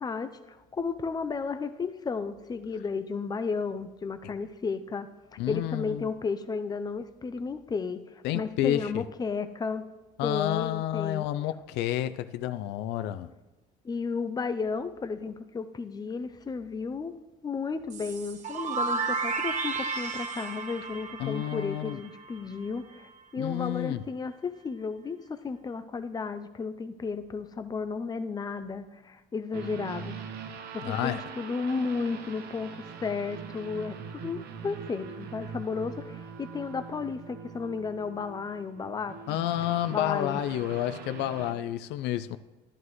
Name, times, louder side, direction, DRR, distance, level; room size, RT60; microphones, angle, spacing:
voice 1, 0.0-5.1 5.5-8.0 8.3-9.8 10.2-11.3 13.8-17.1 17.4-30.2 30.7-32.7 33.0-34.0 34.2-39.4 39.9-40.4, left 5 dB, 25° left, 0.6 m, -33 dB
voice 2, 5.4-6.1 8.2-9.0 10.2-13.3 21.2-22.0 23.4-24.0 30.8-31.2 39.3-42.4, left 13 dB, 90° left, 0.4 m, -30 dB
sound 1, 17.9-22.6, right 4 dB, 45° right, 0.8 m, -33 dB
sound 2, 29.5-41.5, right 6 dB, 75° right, 0.9 m, -42 dB
11.5 x 11.0 x 3.1 m
cardioid pair, 110°, 17 cm